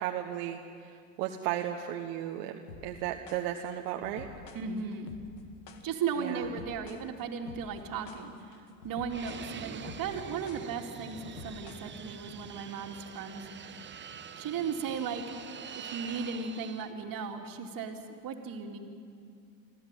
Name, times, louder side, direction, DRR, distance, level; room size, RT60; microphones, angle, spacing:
voice 1, 0.0-4.3 6.2-6.5, right 11 dB, 70° right, 3 dB, 1.5 m, -35 dB
sound 1, 2.7-12.3, left 5 dB, 90° left, 1.8 m, -49 dB
voice 2, 4.5-5.1 5.8-14.1 14.4-15.3 15.7-18.8, right 6 dB, 45° right, 3 dB, 2.8 m, -36 dB
Fixed-wing aircraft airplane, 9.1-16.9, right 7 dB, 25° right, 1.0 m, -45 dB
25.0 x 14.5 x 9.2 m, 2.4 s
hypercardioid pair, 95°, 49 cm